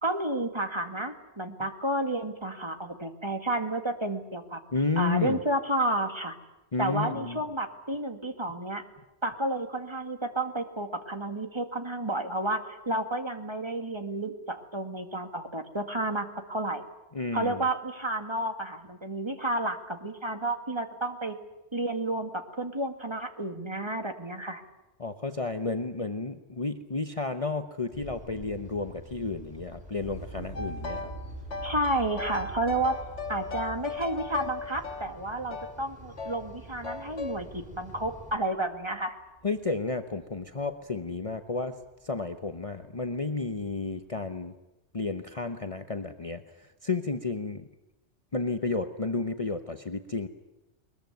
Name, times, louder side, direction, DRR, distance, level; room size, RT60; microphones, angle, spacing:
voice 1, 0.0-4.6 5.0-6.3 6.8-8.8 9.2-16.8 17.3-21.4 21.7-22.3 22.6-24.6 31.6-33.0 33.3-39.2, right 1 dB, 25° right, 6 dB, 2.1 m, -31 dB
voice 2, 4.7-5.4 6.7-7.4 17.1-17.6 25.0-31.1 39.4-44.5 44.9-47.7 48.3-50.3, left 3 dB, 30° left, 7 dB, 1.1 m, -32 dB
sound 1, 27.9-38.4, right 1 dB, 5° right, 4.4 m, -49 dB
sound 2, 30.0-40.8 41.2-43.0 43.2-44.0, right 2 dB, 70° right, 7.7 m, -46 dB
sound 3, 30.6-31.2 31.5-35.8 36.2-36.4 36.8-37.4, left 3 dB, 70° left, 1.9 m, -37 dB
22.0 x 21.5 x 9.3 m, 0.96 s
omnidirectional pair, 1.2 m